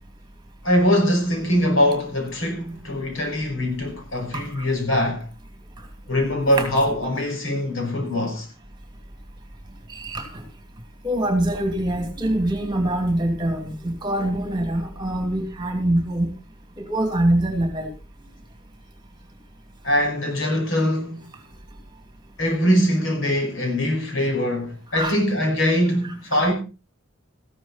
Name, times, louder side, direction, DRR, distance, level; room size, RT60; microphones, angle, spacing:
voice 1, 0.6-5.2 6.1-8.5 19.8-21.3 22.4-26.5, equal, 75° left, 5.7 m, -22 dB
voice 2, 4.3-4.6 6.6-6.7 9.9-10.3 11.0-16.3 16.8-17.9 24.9-25.1 26.3-26.4, right 1 dB, 20° right, 2.8 m, -24 dB
14.5 x 12.5 x 4.3 m
head